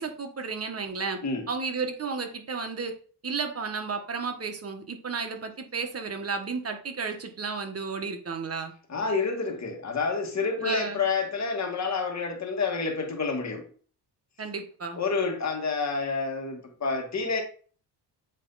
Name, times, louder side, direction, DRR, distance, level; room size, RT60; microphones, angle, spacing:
voice 1, 0.0-1.2 1.5-2.9 3.2-8.7 10.6-11.0 14.4-15.0, right 5 dB, 35° right, 1.4 m, -33 dB
voice 2, 8.9-13.7 14.9-17.4, left 4 dB, 40° left, 1.8 m, -29 dB
8.1 x 3.3 x 4.1 m
cardioid pair, 90°, 42 cm